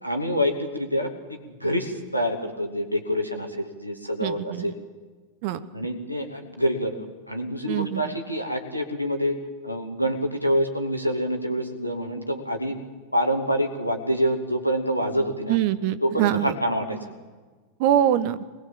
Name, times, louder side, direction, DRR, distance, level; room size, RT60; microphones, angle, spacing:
voice 1, 0.0-4.7 5.7-7.0 7.3-12.8 13.1-15.6 16.0-17.1, equal, 90° left, 4 dB, 2.4 m, -26 dB
voice 2, 4.2-4.7 5.4-5.7 7.7-8.0 15.5-16.5 17.8-18.4, right 11 dB, 45° right, 15 dB, 1.1 m, -23 dB
23.5 x 20.0 x 7.5 m, 1.4 s
figure-of-eight pair, 90°, 0 cm